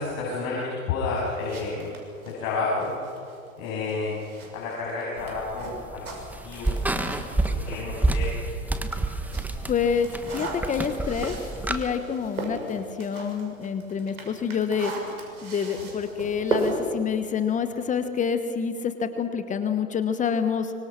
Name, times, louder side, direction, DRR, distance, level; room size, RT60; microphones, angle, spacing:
voice 1, 0.0-1.9 2.2-3.0 3.6-4.2 4.5-7.0 7.4-8.4, left 3 dB, 40° left, -5 dB, 7.9 m, -30 dB
sound 1, 1.2-7.9 8.4-18.1, right 2 dB, 85° right, 6.2 m, -37 dB
sound 2, 5.2-11.8, right 2 dB, 5° right, 1.3 m, -29 dB
voice 2, 9.7-11.3 11.7-14.9 15.4-20.7, left 7 dB, 20° left, 9 dB, 1.2 m, -27 dB
24.5 x 24.5 x 6.0 m, 2.4 s
hypercardioid pair, 115°, 42 cm